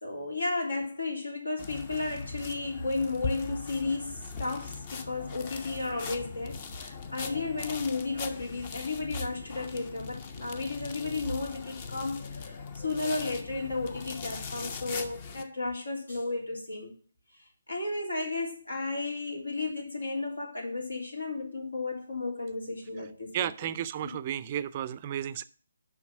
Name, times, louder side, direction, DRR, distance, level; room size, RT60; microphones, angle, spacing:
voice 1, 0.0-16.9 17.7-23.3 23.6-23.7 24.0-24.1, left 3 dB, 80° left, 3.4 m, -33 dB
sound 1, 1.6-15.4, left 5 dB, 35° left, 0.9 m, -40 dB
voice 2, 23.3-25.4, right 10 dB, 30° right, 0.5 m, -33 dB
7.3 x 5.8 x 7.2 m
figure-of-eight pair, 145°, 0 cm